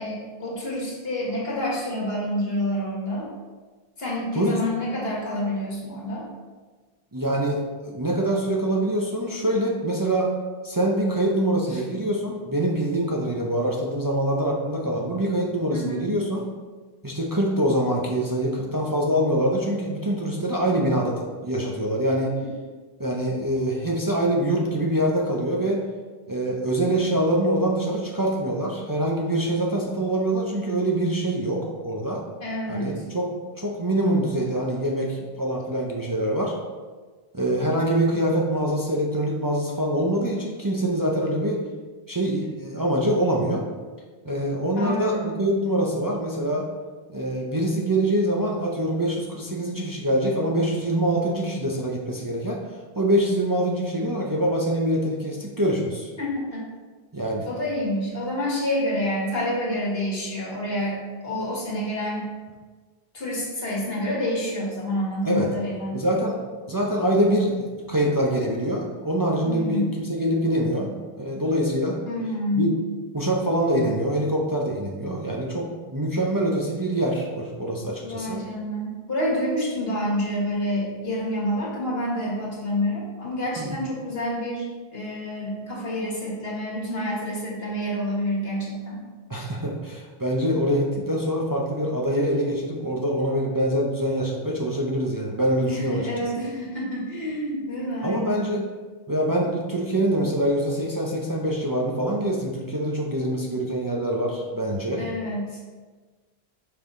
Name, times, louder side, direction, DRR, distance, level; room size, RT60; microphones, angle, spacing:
voice 1, 0.0-3.3 4.0-6.3 11.7-11.8 15.7-16.0 32.4-33.0 44.8-45.3 56.2-56.6 57.5-62.3 63.1-66.0 69.4-69.9 72.1-72.8 78.0-89.0 89.3-89.5 95.7-98.5 105.0-105.6, left 1 dB, 75° left, -4 dB, 2.0 m, -28 dB
voice 2, 7.1-10.3 10.6-16.4 17.0-22.3 23.0-25.8 26.3-32.2 32.7-36.5 37.3-41.6 42.1-43.7 44.2-46.7 47.1-52.6 53.0-56.1 57.1-57.5 65.3-65.5 65.9-66.4 66.7-72.0 72.5-72.8 73.1-78.4 83.6-83.8 89.3-96.3 98.0-98.6 99.1-105.1, right 1 dB, 25° right, -2 dB, 0.6 m, -24 dB
5.9 x 5.5 x 3.8 m, 1.4 s
omnidirectional pair, 1.0 m